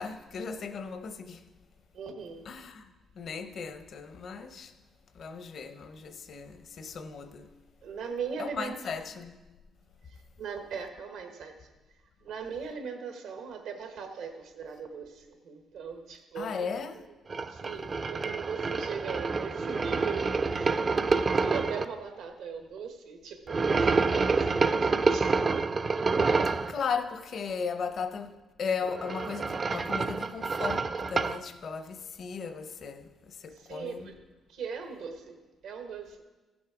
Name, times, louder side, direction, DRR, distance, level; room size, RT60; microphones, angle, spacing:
voice 1, 0.0-1.5 2.4-4.8 5.1-7.5 8.4-9.4 16.3-17.0 26.6-34.1, left 5 dB, 55° left, 0.7 m, -36 dB
voice 2, 1.9-2.5 7.8-8.7 10.1-11.7 12.2-16.7 17.5-20.8 21.1-25.7 26.0-26.1 33.5-34.1 34.5-35.4 35.6-36.2, right 6 dB, 80° right, 1.2 m, -39 dB
sound 1, 17.3-21.8 23.5-26.7 28.8-31.4, right 4 dB, 35° right, 0.4 m, -27 dB
15.5 x 6.2 x 4.8 m
cardioid pair, 90°, 0 cm